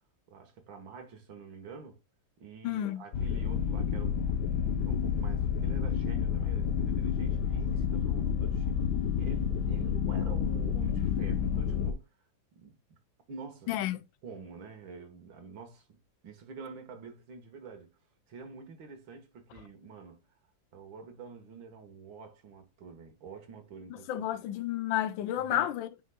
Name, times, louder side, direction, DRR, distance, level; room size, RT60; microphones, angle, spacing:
voice 1, 0.3-2.0 2.4-8.9 9.2-12.1 12.5-13.0 13.3-13.8 14.2-16.0 16.2-17.9 18.3-20.2 20.7-24.4 25.4-25.7, right 4 dB, 85° right, 2.1 m, -47 dB
voice 2, 2.6-3.0 13.7-14.0 24.1-26.1, left 12 dB, 85° left, 1.4 m, -31 dB
sound 1, 3.1-11.9, left 7 dB, 70° left, 1.3 m, -29 dB
9.0 x 5.1 x 2.2 m
omnidirectional pair, 2.0 m